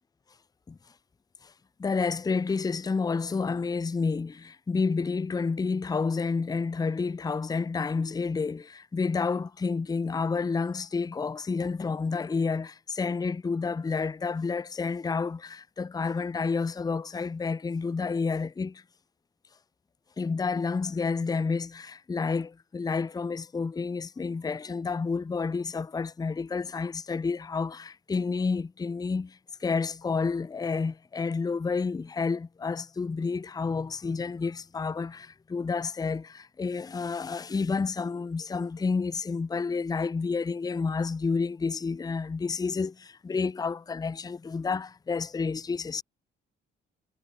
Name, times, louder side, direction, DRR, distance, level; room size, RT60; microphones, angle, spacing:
voice 1, 1.8-18.8 20.2-46.0, left 4 dB, 20° left, 0.6 m, -30 dB
cardioid pair, 90°, 20 cm